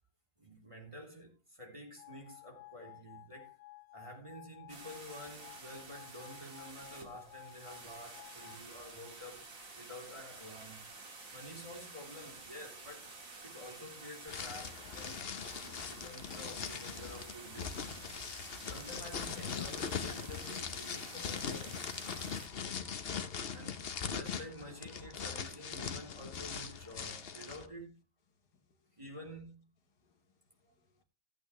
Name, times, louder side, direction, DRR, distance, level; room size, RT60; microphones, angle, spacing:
voice 1, 0.4-3.5 3.9-10.8 11.3-13.1 13.4-15.3 15.8-18.1 18.4-21.9 23.5-23.8 24.0-28.0 29.0-29.7 30.7-30.8, equal, 15° right, 3.1 m, -50 dB
sound 1, 2.0-8.6, left 22 dB, 90° left, 1.6 m, -55 dB
sound 2, 4.7-22.5, right 3 dB, 50° right, 2.4 m, -51 dB
sound 3, 14.3-27.6, left 6 dB, 45° left, 0.9 m, -41 dB
voice 2, 28.3-29.0 29.9-31.0, left 4 dB, 70° left, 1.6 m, -76 dB
15.0 x 8.5 x 3.2 m
omnidirectional pair, 1.8 m